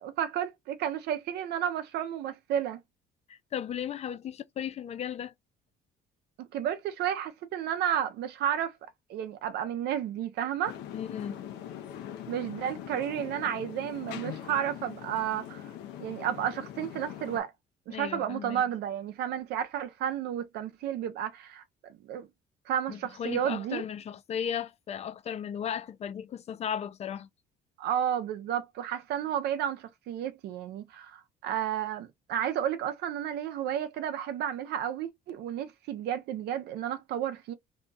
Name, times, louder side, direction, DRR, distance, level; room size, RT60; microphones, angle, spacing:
voice 1, 0.2-2.8 6.4-8.7 9.1-10.8 12.3-15.6 16.0-17.5 17.9-21.6 22.0-22.3 22.7-23.8 27.8-37.5, right 10 dB, 75° right, 0.6 m, -32 dB
voice 2, 3.3-5.3 10.9-11.5 17.9-18.6 22.9-27.3, left 8 dB, 40° left, 0.4 m, -36 dB
sound 1, 10.6-17.4, left 10 dB, 85° left, 0.7 m, -42 dB
2.8 x 2.3 x 3.8 m
cardioid pair, 110°, 17 cm